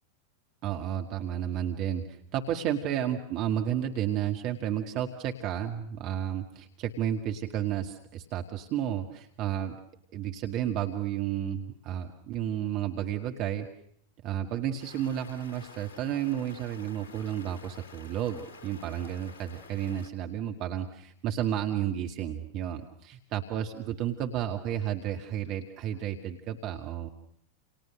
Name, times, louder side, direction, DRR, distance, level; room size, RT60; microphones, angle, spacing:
voice 1, 0.6-9.8 10.1-13.7 14.2-27.1, right 10 dB, 40° right, 4 dB, 2.1 m, -32 dB
Stream, 14.8-20.1, left 4 dB, 55° left, 3.1 m, -50 dB
29.5 x 29.5 x 6.6 m, 0.69 s
figure-of-eight pair, 90°, 0 cm